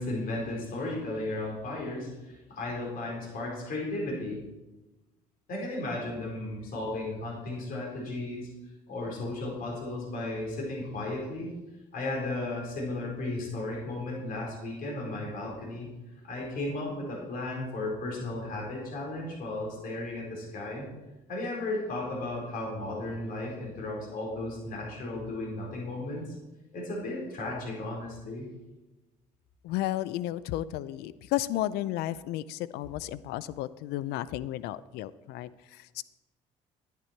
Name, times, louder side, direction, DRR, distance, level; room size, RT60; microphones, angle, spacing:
voice 1, 0.0-4.4 5.5-8.5 8.9-11.5 11.9-15.9 16.2-20.9 21.3-26.3 26.7-28.4, left 2 dB, 60° left, -2 dB, 4.7 m, -35 dB
voice 2, 29.6-36.0, left 14 dB, 75° left, 17 dB, 0.5 m, -33 dB
11.0 x 10.5 x 4.5 m, 1.1 s
supercardioid pair, 75°, 17 cm